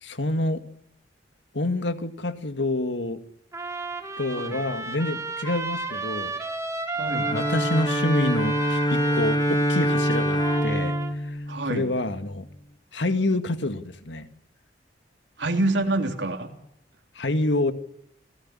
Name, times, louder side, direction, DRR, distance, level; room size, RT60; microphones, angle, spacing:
voice 1, 0.0-0.6 1.5-3.2 4.2-6.3 7.3-11.4 11.7-12.4 12.9-14.3 17.2-17.7, left 2 dB, 75° left, 9 dB, 2.2 m, -27 dB
Trumpet, 3.5-11.1, right 3 dB, 15° right, 4.0 m, -32 dB
voice 2, 6.9-7.3 11.5-11.9 15.4-16.5, right 2 dB, 75° right, 4 dB, 3.3 m, -26 dB
Bowed string instrument, 7.1-12.3, equal, 25° left, 1.7 m, -25 dB
29.0 x 17.0 x 10.0 m, 0.81 s
head